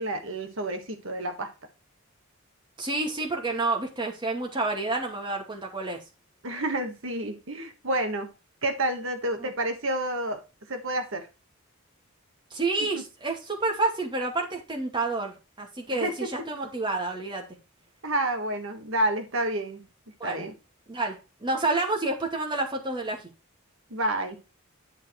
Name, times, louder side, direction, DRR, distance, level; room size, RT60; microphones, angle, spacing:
voice 1, 0.0-1.5 6.4-8.3 8.6-10.4 10.7-11.3 12.9-13.0 15.9-16.3 18.0-19.8 20.2-20.5 23.9-24.4, right 1 dB, 65° right, 6 dB, 1.5 m, -29 dB
voice 2, 2.8-6.0 9.4-9.5 12.5-17.5 20.2-20.4 20.9-23.2, right 2 dB, 20° right, 1 dB, 2.4 m, -29 dB
11.0 x 4.7 x 4.6 m, 0.29 s
head